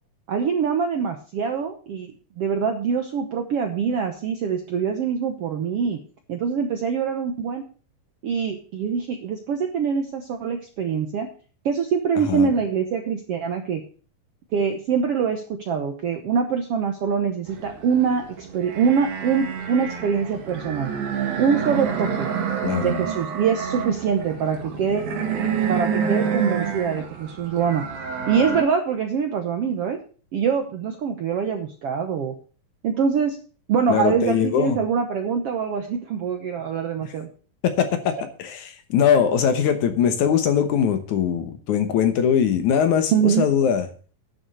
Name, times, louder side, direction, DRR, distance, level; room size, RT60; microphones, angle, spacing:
voice 1, 0.3-6.0 6.3-7.6 8.2-11.3 11.6-13.8 14.5-20.9 21.4-22.3 22.8-25.0 25.7-27.8 28.3-30.0 30.3-32.3 32.8-33.4 33.7-37.3 43.1-43.5, right 6 dB, 70° right, 5 dB, 1.5 m, -24 dB
sound 1, 17.5-28.6, right 6 dB, 90° right, 3.7 m, -28 dB
voice 2, 22.6-23.0 33.9-34.8 37.6-43.9, left 8 dB, 65° left, 8 dB, 2.3 m, -21 dB
11.0 x 7.2 x 6.3 m, 0.39 s
omnidirectional pair, 4.0 m